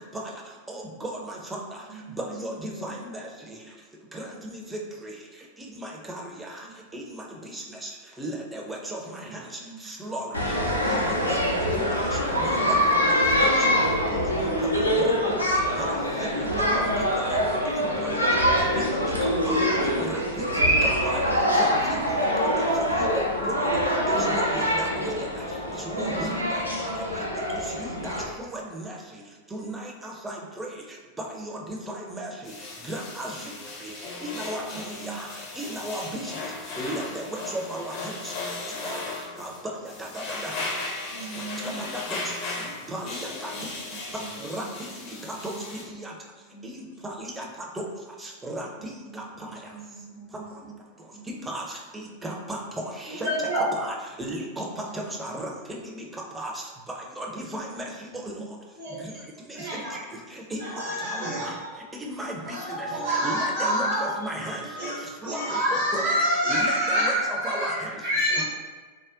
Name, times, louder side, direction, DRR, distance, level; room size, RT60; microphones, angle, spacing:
voice 1, 0.7-1.8 2.2-3.6 4.1-5.1 5.6-6.7 6.9-7.9 8.2-9.5 9.8-10.6 10.8-11.8 12.1-12.8 13.1-13.6 14.1-14.2 14.7-15.1 15.8-16.3 16.7-17.4 17.7-18.9 19.2-21.3 21.6-22.2 22.6-23.8 24.1-25.4 25.8-26.6 26.9-27.0 27.4-29.0 29.5-30.8 31.2-32.5 32.8-33.4 33.8-33.9 34.2-35.3 35.6-36.4 36.8-38.3 38.8-39.0 39.4-39.5 39.8-40.7 41.3-42.2 42.9-43.5 44.4-44.7 45.1-46.1 46.6-47.5 47.7-47.9 48.2-49.5 51.5-53.3 53.8-54.7 54.9-56.1 56.3-56.5 57.2-58.4 59.0-59.1 59.5-60.1 60.3-60.8 61.1-61.6 61.9-64.9 65.2-68.0 68.4-68.5, right 1 dB, 10° right, -1 dB, 0.5 m, -36 dB
voice 2, 1.9-2.5 2.8-2.9 3.4-3.7 9.2-9.3 9.6-9.9 12.5-12.8 13.4-13.5 14.1-14.2 14.8-15.0 15.8-15.9 16.4-16.5 17.9-19.5 21.5-22.0 22.4-22.5 25.9-26.3 34.7-35.2 41.1-41.8 43.5-44.3 44.6-44.8 45.4-45.6 46.0-46.1 46.5-46.7 47.0-47.1 48.8-50.7 51.1-51.2 54.5-54.9 58.3-58.5 63.5-63.9, right 5 dB, 70° left, -7 dB, 1.1 m, -43 dB
sound 1, 10.3-28.2, equal, 85° left, 0.5 m, -24 dB
sound 2, 32.4-45.8, left 3 dB, 45° left, 0.7 m, -36 dB
voice 3, 53.2-53.7 58.8-59.0 59.5-60.0 60.6-61.7 62.5-64.1 64.4-64.5 64.7-68.4, equal, 55° right, -7 dB, 0.7 m, -27 dB
3.5 x 2.1 x 2.4 m, 1.4 s
figure-of-eight pair, 90°, 0 cm